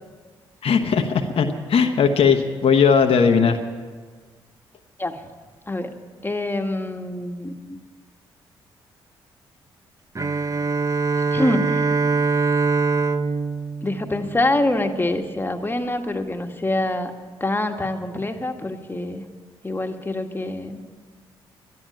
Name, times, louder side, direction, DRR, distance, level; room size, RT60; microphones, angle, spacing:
voice 1, 0.6-3.6, left 6 dB, 60° left, 5 dB, 1.1 m, -18 dB
voice 2, 6.2-7.8 11.3-11.9 13.8-17.1 17.4-19.2 19.6-20.8, left 1 dB, 20° left, 5 dB, 1.7 m, -25 dB
Bowed string instrument, 10.1-14.9, right 4 dB, 30° right, 0.9 m, -23 dB
12.0 x 11.0 x 8.9 m, 1.5 s
supercardioid pair, 50°, 11 cm